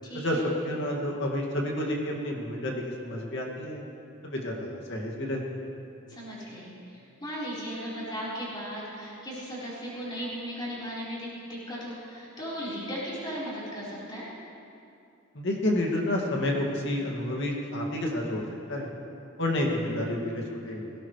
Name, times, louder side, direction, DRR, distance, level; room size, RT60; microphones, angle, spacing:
voice 1, 0.0-0.4 6.1-14.3, equal, 20° left, -8 dB, 4.4 m, -37 dB
voice 2, 0.6-3.8 4.2-5.7 15.3-18.4 18.7-18.9 19.4-20.9, left 1 dB, 55° left, -1 dB, 2.3 m, -30 dB
21.0 x 17.0 x 3.3 m, 2.6 s
head